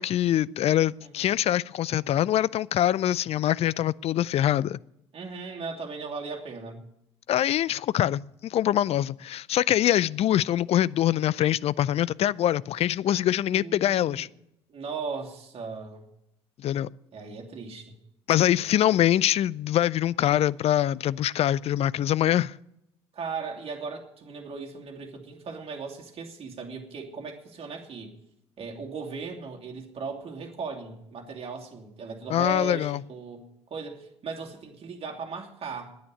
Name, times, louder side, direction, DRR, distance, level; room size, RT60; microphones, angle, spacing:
voice 1, 0.0-4.8 7.3-14.3 16.6-16.9 18.3-22.5 32.3-33.0, left 12 dB, 45° left, 0.4 m, -24 dB
voice 2, 1.0-1.3 5.1-6.8 13.5-14.3 14.7-16.0 17.1-18.0 23.1-28.1 28.6-36.0, right 4 dB, 40° right, 2.8 m, -37 dB
10.5 x 9.6 x 9.8 m
hypercardioid pair, 55°, 15 cm